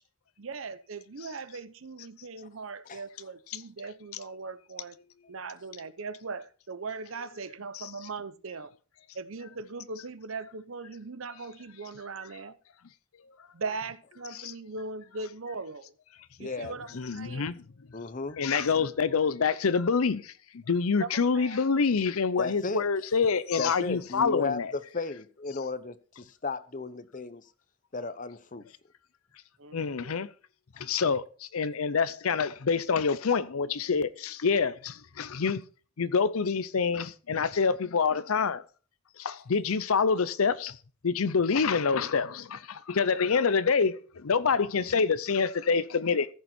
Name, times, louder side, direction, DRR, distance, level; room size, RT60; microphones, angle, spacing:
voice 1, 0.4-5.0 5.3-8.7 9.1-12.6 13.5-15.9 16.4-17.5 18.5-18.7 21.0-21.6 29.6-30.2, right 4 dB, 65° right, 0.8 m, -39 dB
voice 2, 16.4-16.8 17.9-18.4 22.4-22.8 23.6-27.4 27.9-28.6, left 3 dB, 40° left, 0.8 m, -35 dB
voice 3, 16.9-17.6 18.4-24.7 29.7-30.3 30.8-35.6 36.0-38.6 39.2-40.8 41.0-46.3, left 5 dB, 80° left, 0.6 m, -26 dB
14.5 x 6.9 x 4.4 m
head